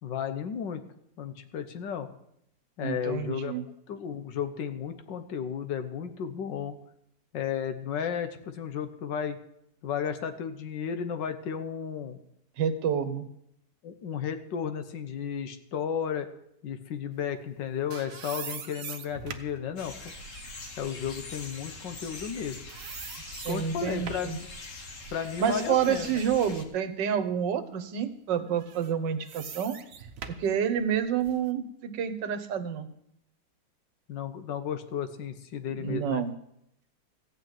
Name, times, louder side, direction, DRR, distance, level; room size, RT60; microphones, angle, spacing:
voice 1, 0.0-0.8 1.2-2.1 2.8-3.5 3.9-6.8 7.3-9.4 9.8-12.2 13.8-16.3 16.6-20.1 20.8-22.6 23.5-24.5 25.1-26.2 34.1-36.3, left 8 dB, 80° left, 9 dB, 1.7 m, -33 dB
voice 2, 2.8-3.6 12.6-13.3 23.3-24.4 25.4-29.8 30.4-32.9 35.8-36.3, right 8 dB, 80° right, 10 dB, 1.6 m, -29 dB
sound 1, 17.5-22.4 22.7-24.4 24.9-26.8 27.3-27.4 28.5-31.5, right 7 dB, 55° right, 1.2 m, -44 dB
sound 2, 19.8-26.6, left 3 dB, 50° left, 1.6 m, -43 dB
15.0 x 5.7 x 8.9 m, 0.77 s
omnidirectional pair, 1.9 m